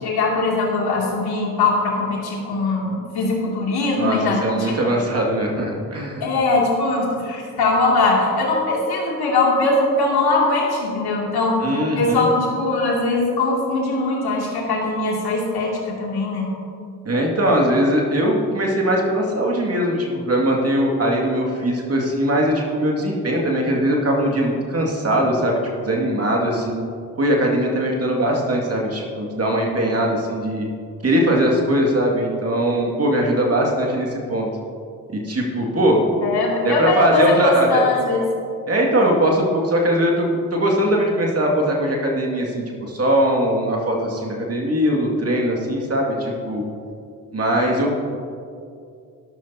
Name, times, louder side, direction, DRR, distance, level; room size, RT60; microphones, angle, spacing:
voice 1, 0.0-4.7 6.2-11.6 11.9-16.5 36.2-38.2, left 3 dB, 55° left, -3 dB, 2.8 m, -21 dB
voice 2, 3.9-6.3 11.6-12.3 17.0-25.6 25.8-26.8 27.2-30.7 31.0-34.5 35.1-36.1 36.6-37.8 38.7-40.3 40.5-46.6 47.3-48.0, right 1 dB, 35° right, -1 dB, 2.3 m, -20 dB
12.5 x 12.5 x 2.9 m, 2.4 s
hypercardioid pair, 40°, 44 cm